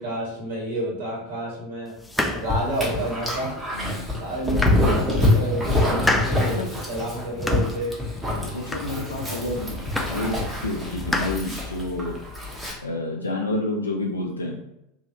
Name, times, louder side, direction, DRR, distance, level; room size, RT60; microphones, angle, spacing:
voice 1, 0.0-1.9 2.3-3.6 4.2-6.6 6.9-8.0, right 1 dB, 65° right, -5 dB, 1.4 m, -29 dB
sound 1, 2.0-3.3 3.8-3.9 4.3-5.3 5.7-6.5 6.9-7.9 8.2-9.2 9.6-10.4 10.6-11.9, left 2 dB, 10° left, 0.4 m, -30 dB
Dog, 2.2-12.7, left 1 dB, 10° right, 1.0 m, -26 dB
voice 2, 3.7-4.1 6.4-6.7 8.5-12.2 12.8-14.6, left 2 dB, 80° left, 0 dB, 0.4 m, -29 dB
3.0 x 2.7 x 2.8 m, 0.84 s
figure-of-eight pair, 80°, 0 cm